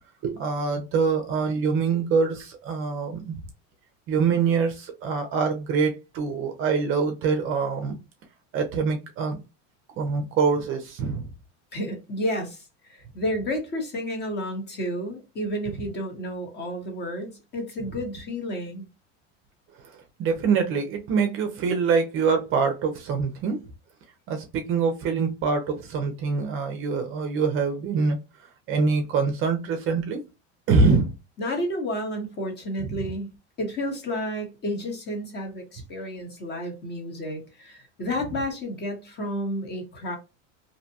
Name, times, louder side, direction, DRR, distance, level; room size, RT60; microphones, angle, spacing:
voice 1, 0.2-3.4 4.1-7.9 8.5-9.4 10.0-11.3 19.9-23.6 24.3-28.2 28.7-30.2 30.7-31.1 32.9-33.1, right 5 dB, 35° right, 0.5 m, -24 dB
voice 2, 11.7-18.9 31.4-33.3 33.6-40.2, equal, 30° left, 0.9 m, -31 dB
2.7 x 2.1 x 2.6 m
supercardioid pair, 135°, 37 cm